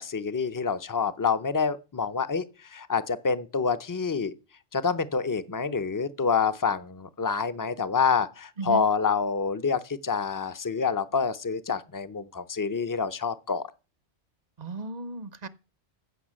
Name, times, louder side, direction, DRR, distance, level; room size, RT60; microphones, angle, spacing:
voice 1, 0.0-4.3 4.7-13.7, left 5 dB, 25° left, 0.5 m, -27 dB
voice 2, 14.6-15.5, right 3 dB, 45° right, 0.7 m, -35 dB
15.0 x 5.8 x 7.5 m
omnidirectional pair, 1.2 m